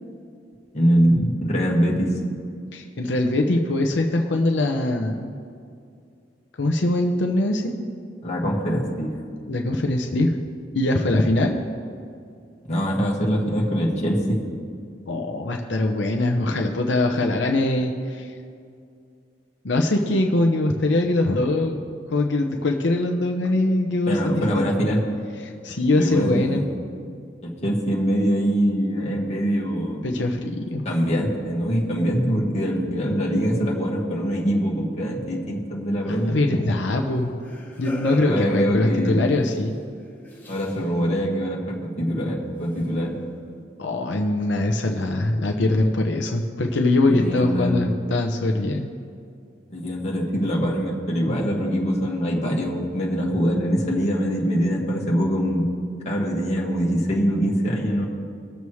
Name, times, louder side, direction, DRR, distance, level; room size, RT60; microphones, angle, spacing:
voice 1, 0.7-2.1 8.2-9.2 12.7-14.4 24.1-25.0 25.9-26.7 27.4-30.1 30.8-36.4 38.2-39.2 40.5-43.2 47.1-47.9 49.7-55.6 56.0-58.0, equal, 40° left, -3 dB, 1.8 m, -23 dB
voice 2, 2.7-5.3 6.6-7.8 9.5-10.4 10.7-11.6 15.1-18.3 19.6-21.8 22.1-24.6 25.4-26.6 30.0-30.8 36.1-37.3 37.8-39.8 43.8-48.9, left 2 dB, 90° left, 3 dB, 0.8 m, -22 dB
sound 1, 36.1-39.5 40.2-40.9 42.8-42.9, left 2 dB, 10° left, 1.2 m, -38 dB
21.0 x 7.0 x 3.2 m, 2.3 s
head